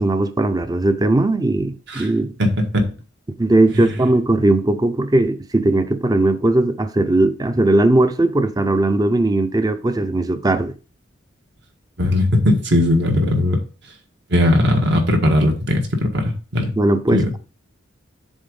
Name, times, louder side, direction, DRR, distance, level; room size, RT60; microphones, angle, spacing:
voice 1, 0.0-2.3 3.4-10.7 16.8-17.4, right 2 dB, 20° right, 0.6 m, -18 dB
voice 2, 2.4-2.9 3.7-3.9 12.0-13.6 14.3-16.7 17.1-17.3, left 1 dB, 65° right, 1.6 m, -18 dB
7.3 x 3.6 x 5.3 m
head